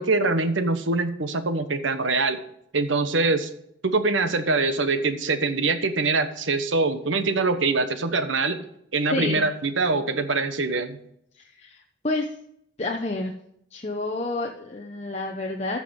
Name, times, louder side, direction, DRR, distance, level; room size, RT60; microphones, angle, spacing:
voice 1, 0.0-2.4 2.7-3.5 3.8-8.6 8.9-11.0, right 3 dB, 80° right, 10 dB, 1.2 m, -24 dB
voice 2, 9.1-9.5 11.3-12.3 12.8-13.3 13.7-15.8, left 2 dB, 35° left, 1 dB, 0.9 m, -29 dB
14.5 x 6.1 x 5.3 m, 0.74 s
head